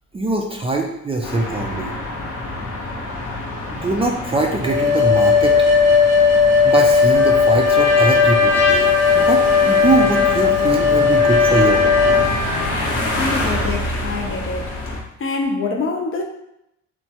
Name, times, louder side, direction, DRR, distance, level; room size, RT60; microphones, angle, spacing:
voice 1, 0.1-1.9 3.7-5.6 6.6-12.2 13.1-13.8, right 3 dB, 20° right, 0 dB, 0.3 m, -23 dB
sound 1, 1.2-15.0, left 2 dB, 90° left, 0.7 m, -27 dB
sound 2, 4.6-12.2, left 5 dB, 70° right, 0.6 m, -16 dB
Trumpet, 7.1-12.8, left 1 dB, 5° left, 0.9 m, -24 dB
voice 2, 13.2-14.8 15.2-16.2, left 3 dB, 45° left, 3 dB, 0.5 m, -25 dB
3.1 x 2.2 x 2.7 m, 0.80 s
cardioid pair, 90°, 30 cm